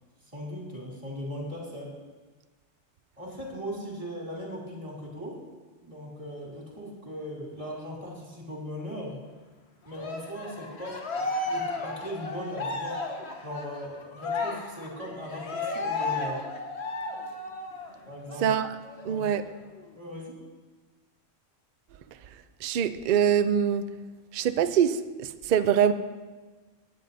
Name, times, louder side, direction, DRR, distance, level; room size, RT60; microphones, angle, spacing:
voice 1, 0.3-2.0 3.2-5.4 5.8-9.3 9.8-13.0 13.4-16.4 18.1-18.5 19.1-19.3 19.9-20.4, equal, 25° right, -4 dB, 3.0 m, -38 dB
Cheering, 9.9-17.9 18.3-18.5 18.8-19.8, left 3 dB, 55° left, 1.3 m, -34 dB
voice 2, 18.4-18.8 19.0-19.5 22.6-23.9 24.3-25.9, right 8 dB, 60° right, 10 dB, 0.5 m, -24 dB
17.0 x 9.6 x 2.7 m, 1.3 s
omnidirectional pair, 1.3 m